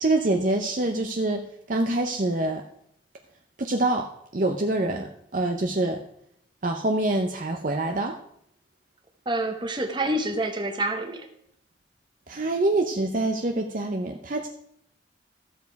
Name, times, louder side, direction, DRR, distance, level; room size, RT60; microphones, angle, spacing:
voice 1, 0.0-1.4 1.7-2.6 3.6-4.1 4.3-5.1 5.3-6.0 6.6-8.1 12.3-14.5, right 2 dB, 45° right, 4 dB, 0.7 m, -25 dB
voice 2, 9.2-11.3, right 1 dB, 25° right, 5 dB, 1.1 m, -27 dB
13.0 x 7.0 x 4.7 m, 0.71 s
head